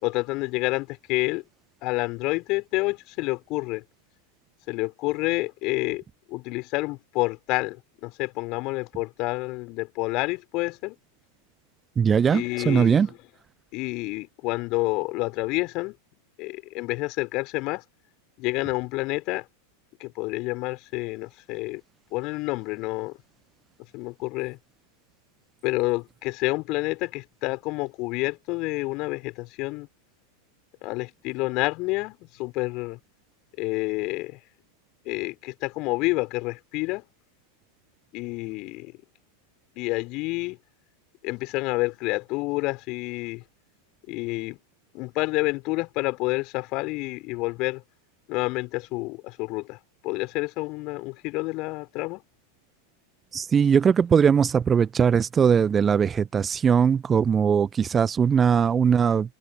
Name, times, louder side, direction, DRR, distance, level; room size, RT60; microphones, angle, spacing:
voice 1, 0.0-1.4 1.8-3.8 4.7-6.0 6.3-10.9 12.3-13.2 13.7-15.9 16.4-17.8 18.4-19.4 20.0-21.8 22.1-23.2 23.9-24.6 25.6-29.9 30.8-33.0 33.6-34.4 35.0-37.0 38.1-38.9 39.7-40.6 41.2-43.4 44.1-44.6 44.9-47.8 48.3-49.8 50.0-52.2, left 23 dB, 40° left, 3.4 m, -29 dB
voice 2, 12.0-13.1 53.3-59.3, right 7 dB, 20° right, 1.0 m, -20 dB
figure-of-eight pair, 90°, 0 cm